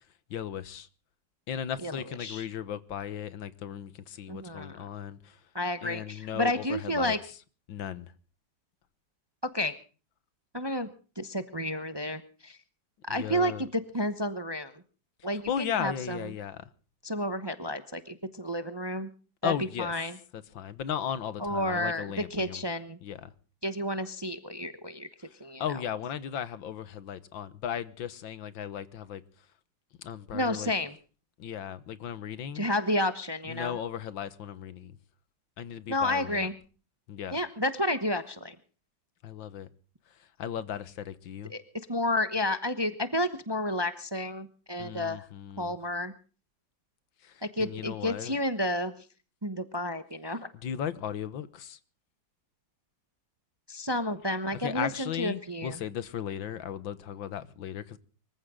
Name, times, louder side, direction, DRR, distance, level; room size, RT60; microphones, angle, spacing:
voice 1, 0.3-0.9 1.5-5.4 5.8-7.2 7.7-8.1 13.1-13.7 15.5-16.7 19.4-19.9 20.3-22.6 23.0-23.3 25.6-29.2 30.0-30.7 31.4-32.7 33.5-35.0 35.6-36.5 37.1-37.4 39.2-39.7 40.2-41.5 44.8-45.8 47.2-48.4 50.5-51.8 54.6-58.0, left 9 dB, 85° left, 1.9 m, -36 dB
voice 2, 1.8-2.4 4.3-4.9 5.5-7.2 9.5-9.7 10.5-10.9 11.2-12.6 13.0-14.7 15.2-16.2 17.0-19.1 19.4-19.5 19.8-20.2 21.4-23.0 23.6-25.1 25.4-25.6 30.3-30.9 32.5-33.8 35.9-36.5 37.3-38.6 41.5-41.6 41.9-45.2 45.6-46.1 47.4-48.9 49.4-50.5 53.7-55.8, left 1 dB, 20° right, 0.8 m, -31 dB
24.5 x 15.0 x 3.8 m
omnidirectional pair, 2.1 m